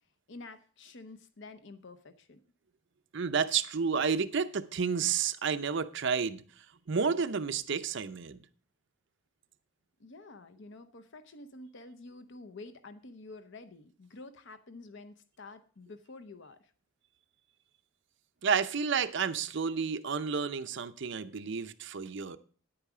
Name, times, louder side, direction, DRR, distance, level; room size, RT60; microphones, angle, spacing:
voice 1, 0.3-2.4 10.0-16.7, left 3 dB, 65° left, 0.8 m, -49 dB
voice 2, 3.1-6.4 6.9-8.4 18.4-22.4, right 6 dB, 60° right, 0.6 m, -30 dB
10.0 x 8.8 x 4.8 m
head